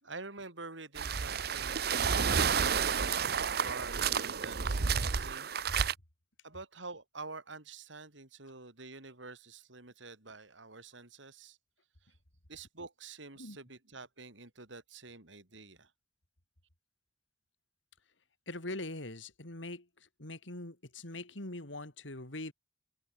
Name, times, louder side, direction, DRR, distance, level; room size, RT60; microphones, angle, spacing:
voice 1, 0.0-3.2 3.6-5.5 6.4-11.6 12.0-12.2 12.5-15.9, right 3 dB, 80° right, 3.9 m, -47 dB
sound 1, 1.0-5.9, right 6 dB, 55° right, 0.8 m, -30 dB
voice 2, 18.5-19.9 20.2-22.5, left 2 dB, 80° left, 3.8 m, -42 dB
open air
head